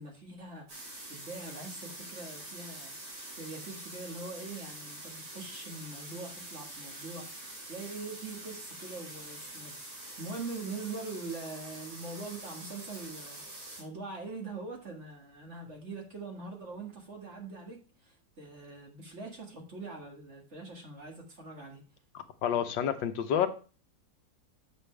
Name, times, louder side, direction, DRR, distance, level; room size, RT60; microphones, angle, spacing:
voice 1, 0.0-3.0 3.4-9.8 10.2-13.4 13.8-21.8, right 3 dB, 40° right, 1 dB, 1.9 m, -43 dB
sound 1, 0.7-13.8, right 1 dB, 65° right, 3.3 m, -45 dB
voice 2, 22.1-23.5, left 9 dB, 90° left, 8 dB, 1.6 m, -29 dB
7.9 x 6.9 x 3.3 m, 0.35 s
omnidirectional pair, 2.0 m